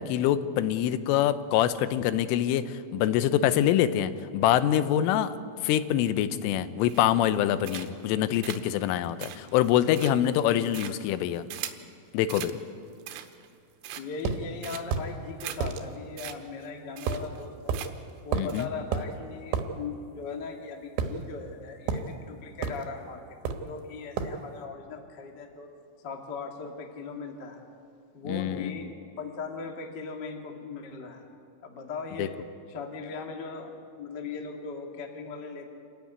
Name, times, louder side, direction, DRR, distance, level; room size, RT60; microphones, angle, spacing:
voice 1, 0.0-5.4 5.6-11.4 12.1-12.6 18.3-18.7 28.3-28.9 32.2-32.3, left 11 dB, 90° left, 13 dB, 3.4 m, -25 dB
sound 1, 6.9-7.3 7.6-8.1 8.4-11.9 12.3-12.6 12.9-13.5 13.8-14.3 14.6-15.0 15.4-15.6 15.9-16.0 16.2-16.4 16.6-16.7 17.0-17.4 17.7-18.1 18.5-18.7, right 12 dB, 85° right, 3.6 m, -40 dB
voice 2, 13.9-17.8 18.2-25.7 26.0-27.6 28.1-31.2 31.6-32.3 32.7-33.7 34.0-35.7, left 4 dB, 55° left, 3 dB, 1.1 m, -39 dB
sound 2, 14.2-14.4 14.9-15.1 15.6-15.8 17.1-17.3 17.7-17.8 18.3-18.6 18.9-19.1 19.5-19.7 21.0-21.5 21.9-22.1 22.6-22.9 23.4-23.7 24.2-24.4, right 6 dB, 70° right, 3.4 m, -30 dB
27.5 x 14.5 x 9.6 m, 2.4 s
omnidirectional pair, 5.6 m